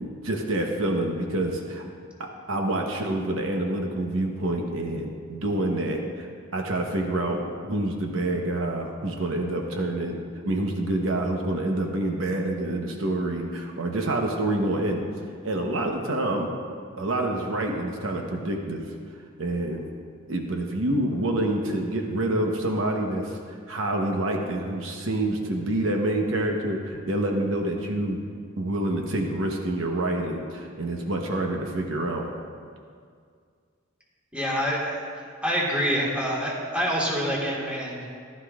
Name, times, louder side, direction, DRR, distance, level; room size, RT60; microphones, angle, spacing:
voice 1, 0.0-1.8 2.2-6.3 6.5-15.0 15.4-16.5 17.0-18.8 19.4-19.9 20.3-23.4 23.7-28.2 28.6-32.3, right 1 dB, 75° right, 2 dB, 1.0 m, -27 dB
voice 2, 34.3-35.0 35.4-38.0, equal, 5° right, -4 dB, 1.7 m, -26 dB
15.0 x 11.5 x 2.5 m, 2.1 s
head